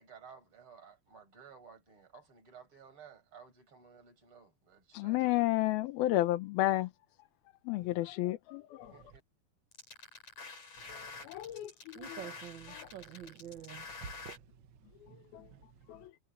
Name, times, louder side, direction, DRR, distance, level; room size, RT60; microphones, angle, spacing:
voice 1, 0.0-5.3 8.9-9.0, right 6 dB, 35° right, 6.9 m, -55 dB
voice 2, 4.9-6.9 7.7-8.9 10.9-11.7 12.1-12.2 12.7-12.9 15.3-15.5 15.9-16.1, left 16 dB, 80° left, 2.8 m, -32 dB
sound 1, 9.7-14.4, left 4 dB, 45° left, 7.7 m, -48 dB
voice 3, 11.9-14.4 15.1-15.2 15.5-15.6, right 9 dB, 75° right, 1.0 m, -47 dB
omnidirectional pair, 4.3 m